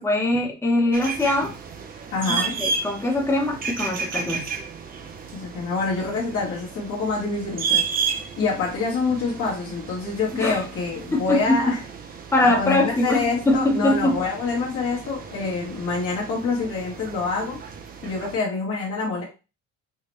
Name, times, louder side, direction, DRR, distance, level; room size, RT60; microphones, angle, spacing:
voice 1, 0.0-1.6 2.3-4.5 10.4-10.6 11.1-11.6 12.3-14.2, left 2 dB, 10° left, -1 dB, 0.8 m, -22 dB
sound 1, 0.9-18.4, right 5 dB, 30° right, 0.4 m, -33 dB
voice 2, 2.1-2.6 5.3-7.9 8.4-11.8 12.4-17.6 18.0-19.2, left 4 dB, 50° left, -4 dB, 1.2 m, -26 dB
4.7 x 2.1 x 3.0 m, 0.31 s
cardioid pair, 160°, 30 cm